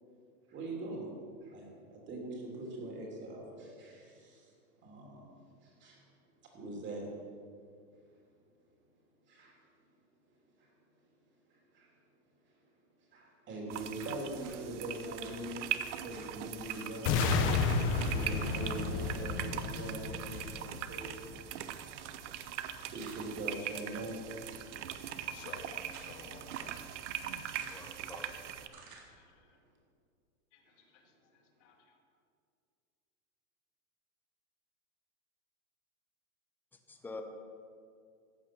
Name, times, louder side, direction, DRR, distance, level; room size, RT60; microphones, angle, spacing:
voice 1, 0.5-1.1 1.4-4.5 4.8-5.3 5.6-6.0 6.5-7.1 9.3-9.6 10.6-10.7 11.7-11.9 13.1-15.7 16.0-17.3 18.1-22.1 22.9-24.2, right 2 dB, 25° right, -1 dB, 3.0 m, -42 dB
sound 1, 13.7-28.7, right 10 dB, 55° right, 0.9 m, -41 dB
sound 2, 14.0-14.6 15.2-15.4 15.8-15.9 16.1-16.3 16.7-17.3 18.0-18.6 18.9-19.1 19.7-19.9 20.3-20.6 23.0-23.5 24.3-24.7 25.4-26.2 26.5-26.7 27.6-28.0 28.7-29.1, right 5 dB, 80° right, 3.4 m, -54 dB
sound 3, 17.1-21.1, left 4 dB, 30° left, 1.0 m, -32 dB
voice 2, 25.2-26.8 27.4-27.9 28.2-28.3 29.1-29.4 30.5-30.6 30.9-31.0 31.6-31.8, left 5 dB, 55° left, 3 dB, 2.2 m, -53 dB
voice 3, 27.5-28.9 36.9-37.2, left 3 dB, 5° left, 5 dB, 0.5 m, -48 dB
14.5 x 9.0 x 6.0 m, 2.3 s
supercardioid pair, 150°, 43 cm